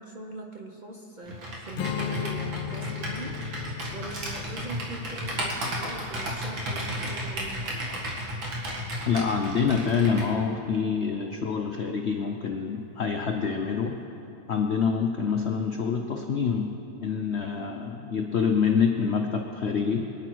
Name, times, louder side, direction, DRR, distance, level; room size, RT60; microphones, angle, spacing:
voice 1, 0.0-7.7, right 2 dB, 65° right, 1 dB, 0.4 m, -41 dB
Computer keyboard, 1.3-10.3, equal, 80° right, 2.6 m, -33 dB
Strum, 1.8-7.1, left 11 dB, 85° left, 1.4 m, -37 dB
voice 2, 9.1-14.0 14.5-20.1, left 6 dB, 70° left, 4 dB, 0.6 m, -26 dB
23.5 x 9.7 x 4.6 m, 2.8 s
omnidirectional pair, 2.1 m